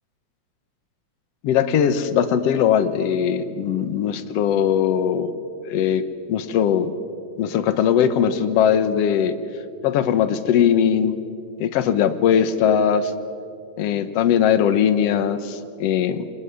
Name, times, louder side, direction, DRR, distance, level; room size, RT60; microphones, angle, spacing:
voice 1, 1.4-5.3 5.7-6.0 6.3-6.9 7.4-9.3 9.8-11.1 11.6-13.1 13.8-16.2, left 8 dB, 65° left, 12 dB, 1.7 m, -20 dB
26.0 x 20.0 x 9.6 m, 2.5 s
omnidirectional pair, 4.1 m